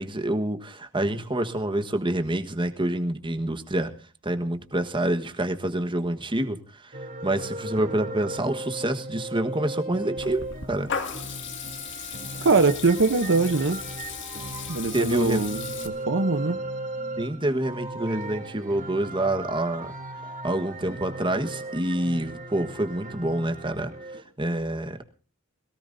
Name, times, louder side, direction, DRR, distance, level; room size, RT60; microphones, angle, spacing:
voice 1, 0.0-3.9 4.2-7.0 7.2-10.4 10.7-10.9 14.9-15.5 17.2-19.9 20.4-25.0, right 1 dB, 25° right, 8 dB, 1.4 m, -27 dB
sound 1, 6.9-24.2, right 2 dB, 40° right, 3.1 m, -37 dB
Water tap faucet / Liquid, 10.2-15.9, left 6 dB, 60° left, 2.1 m, -36 dB
voice 2, 12.4-13.8 14.7-16.6, right 3 dB, 60° right, 10 dB, 0.9 m, -22 dB
21.5 x 17.5 x 2.7 m, 0.37 s
head